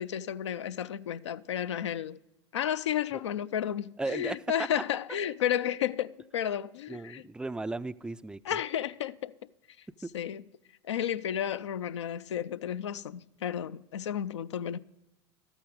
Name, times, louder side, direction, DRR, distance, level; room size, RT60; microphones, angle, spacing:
voice 1, 0.0-2.2 2.5-7.2 8.4-9.3 10.1-10.4 10.8-14.8, left 10 dB, 75° left, 0.4 m, -32 dB
voice 2, 4.0-4.4 6.9-8.6 10.0-10.1, right 2 dB, 5° right, 0.3 m, -36 dB
13.0 x 9.0 x 4.9 m
figure-of-eight pair, 80°, 15 cm